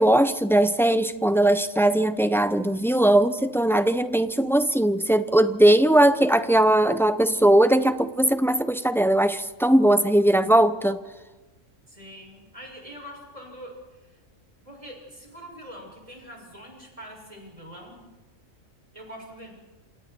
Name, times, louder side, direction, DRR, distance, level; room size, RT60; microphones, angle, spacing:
voice 1, 0.0-11.0, right 1 dB, ahead, 11 dB, 0.8 m, -20 dB
voice 2, 11.9-14.2 14.6-18.1 18.9-19.6, equal, 25° right, 0 dB, 7.1 m, -44 dB
28.0 x 27.5 x 4.6 m, 1.1 s
omnidirectional pair, 1.3 m